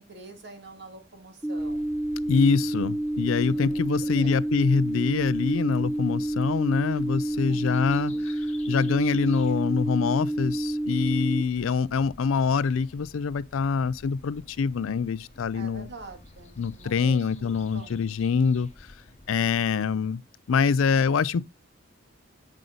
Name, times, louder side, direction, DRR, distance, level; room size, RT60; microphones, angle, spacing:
voice 1, 0.0-2.0 3.4-4.4 7.5-8.3 15.5-18.0, right 3 dB, 55° right, 1.9 m, -47 dB
sound 1, 1.4-11.4, right 1 dB, 5° right, 0.4 m, -29 dB
sound 2, 1.6-19.8, left 2 dB, 35° left, 1.0 m, -51 dB
voice 2, 2.3-8.1 8.7-15.9 16.6-18.7 19.3-20.2 20.5-21.4, left 5 dB, 85° left, 0.4 m, -25 dB
7.8 x 5.4 x 3.8 m
head